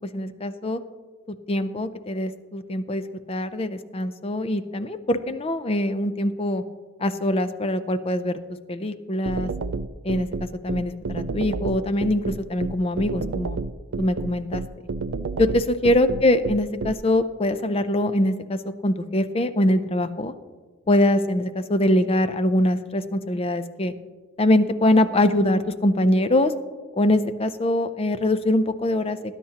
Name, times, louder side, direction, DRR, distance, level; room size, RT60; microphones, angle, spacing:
voice 1, 0.1-0.8 1.3-6.6 7.0-8.4 8.7-9.5 10.0-10.3 10.6-13.6 14.0-14.6 15.4-20.3 20.9-23.9 24.4-26.5 27.0-29.2, left 1 dB, 25° left, 11 dB, 0.5 m, -23 dB
sound 1, 9.3-16.9, right 4 dB, 70° right, 0.4 m, -29 dB
18.5 x 9.8 x 2.9 m, 1.4 s
head